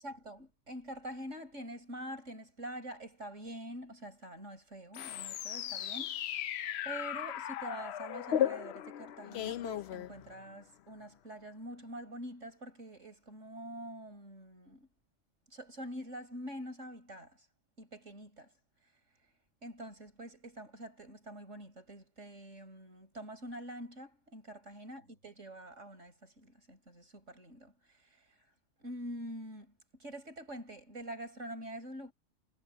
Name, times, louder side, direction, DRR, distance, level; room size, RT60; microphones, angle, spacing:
voice 1, 0.0-6.4 6.8-14.9 15.5-17.4 17.8-18.5 19.6-28.3 28.8-32.1, right 1 dB, 70° right, 6.5 m, -46 dB
sound 1, 4.9-10.6, left 11 dB, 65° left, 0.8 m, -36 dB
omnidirectional pair, 1.3 m